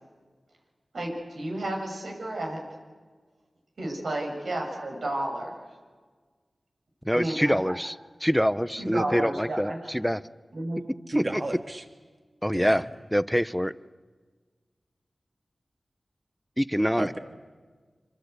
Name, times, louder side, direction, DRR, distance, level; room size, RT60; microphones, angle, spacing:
voice 1, 0.9-2.6 3.8-5.5 7.1-7.6 8.8-9.8 10.5-10.8, right 1 dB, 90° right, 0 dB, 7.5 m, -31 dB
voice 2, 7.0-7.9 8.2-10.2 11.3-11.4 12.4-12.8 13.1-13.7 16.6-17.2, equal, ahead, 15 dB, 0.8 m, -25 dB
voice 3, 11.1-11.8 12.5-12.8 17.0-17.2, right 1 dB, 35° right, 4 dB, 3.1 m, -31 dB
26.5 x 26.0 x 8.3 m, 1.5 s
wide cardioid pair, 65°, 0 cm